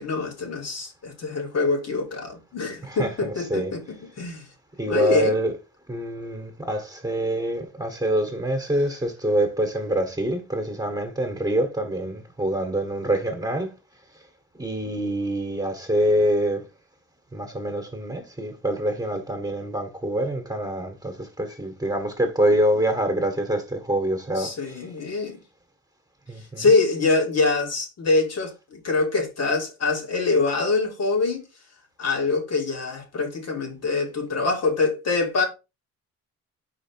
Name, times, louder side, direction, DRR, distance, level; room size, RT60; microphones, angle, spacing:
voice 1, 0.0-4.4 4.9-5.4 24.4-25.4 26.6-31.4 32.0-35.4, left 3 dB, 55° left, 2.2 m, -24 dB
voice 2, 2.8-3.7 4.8-5.6 5.9-13.7 14.5-16.6 17.3-24.8 26.3-26.7, right 1 dB, 10° right, 1.6 m, -25 dB
5.0 x 4.6 x 4.6 m
cardioid pair, 90°, 30 cm